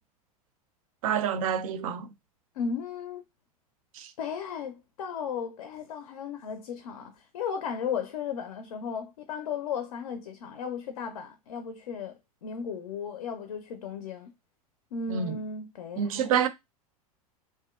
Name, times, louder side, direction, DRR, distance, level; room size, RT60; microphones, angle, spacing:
voice 1, 1.0-2.1 4.0-4.1 15.1-15.4 16.0-16.5, right 8 dB, 65° right, 0.4 m, -27 dB
voice 2, 2.6-3.2 4.2-12.1 12.4-14.3 14.9-16.4, left 6 dB, 70° left, 0.4 m, -35 dB
2.6 x 2.1 x 2.3 m
figure-of-eight pair, 90°, 19 cm